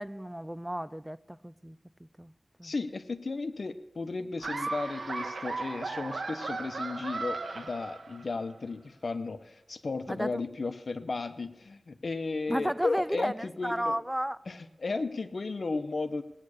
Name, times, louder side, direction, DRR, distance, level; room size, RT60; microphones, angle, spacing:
voice 1, 0.0-1.8 2.2-2.3 2.6-2.7 10.1-10.4 12.5-14.4, equal, 10° right, 18 dB, 0.4 m, -33 dB
voice 2, 2.6-14.0 14.5-16.2, left 3 dB, 70° left, 10 dB, 1.0 m, -34 dB
Laughter, 4.4-8.4, right 3 dB, 85° right, 1.4 m, -36 dB
18.0 x 9.8 x 6.6 m, 0.91 s
wide cardioid pair, 60°, 0 cm